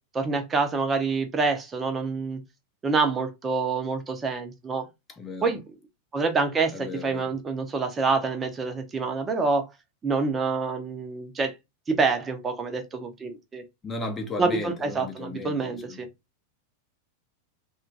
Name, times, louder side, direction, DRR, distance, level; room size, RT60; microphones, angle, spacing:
voice 1, 0.1-2.4 2.8-4.9 5.4-5.6 6.1-9.6 10.0-11.5 11.9-13.6 14.4-16.1, right 4 dB, 20° right, 0.6 m, -27 dB
voice 2, 5.1-5.5 6.7-7.3 13.8-16.1, left 3 dB, 20° left, 0.7 m, -35 dB
2.9 x 2.3 x 2.6 m
figure-of-eight pair, 90°, 0 cm